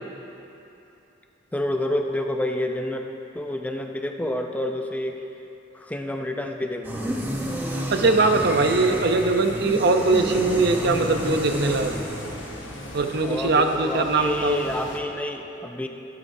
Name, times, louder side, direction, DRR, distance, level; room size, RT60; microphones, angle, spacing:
voice 1, 1.5-3.1 3.3-5.2 5.7-7.0 13.2-15.9, left 1 dB, 10° left, 3 dB, 0.6 m, -28 dB
sound 1, 6.8-13.7, equal, 10° right, 1.0 m, -31 dB
voice 2, 7.9-11.9 12.9-14.6, right 3 dB, 60° right, 5 dB, 0.7 m, -21 dB
sound 2, 10.0-15.0, left 2 dB, 80° left, 1.1 m, -39 dB
15.0 x 12.0 x 2.7 m, 2.9 s
head